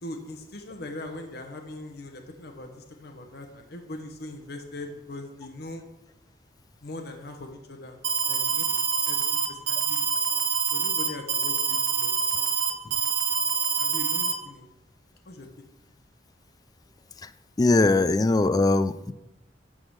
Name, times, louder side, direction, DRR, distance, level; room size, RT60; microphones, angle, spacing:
voice 1, 0.0-5.8 6.8-8.0 8.3-10.1 10.7-13.1 13.8-14.7 15.3-15.5, left 1 dB, 60° left, 4 dB, 1.0 m, -41 dB
Alarm, 8.0-14.3, right 7 dB, 60° right, 0.8 m, -26 dB
voice 2, 17.6-19.1, left 2 dB, 20° left, 13 dB, 0.3 m, -21 dB
11.5 x 3.8 x 6.3 m, 0.96 s
head